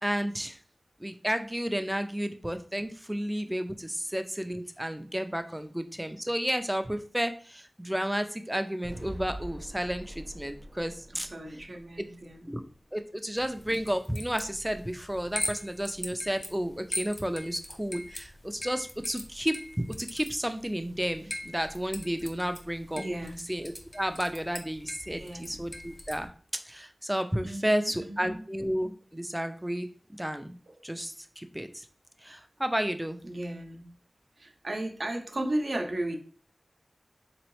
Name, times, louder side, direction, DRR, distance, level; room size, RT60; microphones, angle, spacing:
voice 1, 0.0-0.6 1.0-11.3 12.0-12.1 12.5-12.6 12.9-23.0 23.5-26.3 26.7-30.6 30.8-31.8 32.2-33.2, equal, 10° right, 8 dB, 0.4 m, -32 dB
sound 1, 8.8-13.0, right 1 dB, 35° right, 0.8 m, -44 dB
voice 2, 11.2-12.6 23.0-23.5 25.1-25.6 27.4-28.4 30.7-30.8 33.2-33.9 34.4-36.2, right 1 dB, 65° right, 3 dB, 0.7 m, -35 dB
sound 2, 13.4-26.3, left 1 dB, 35° left, 0.7 m, -41 dB
3.7 x 3.0 x 3.1 m, 0.43 s
wide cardioid pair, 60°, 0 cm